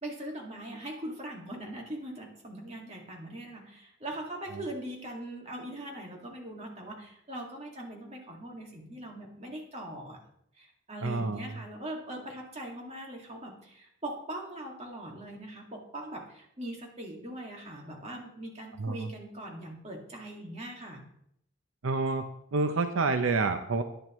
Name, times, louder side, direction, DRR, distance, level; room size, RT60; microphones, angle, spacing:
voice 1, 0.0-10.2 10.5-21.0, right 1 dB, 30° right, 0 dB, 2.1 m, -41 dB
voice 2, 11.0-11.4 18.8-18.9 21.8-22.2 22.5-23.8, right 3 dB, 80° right, 8 dB, 0.6 m, -27 dB
10.5 x 10.0 x 3.1 m, 0.74 s
head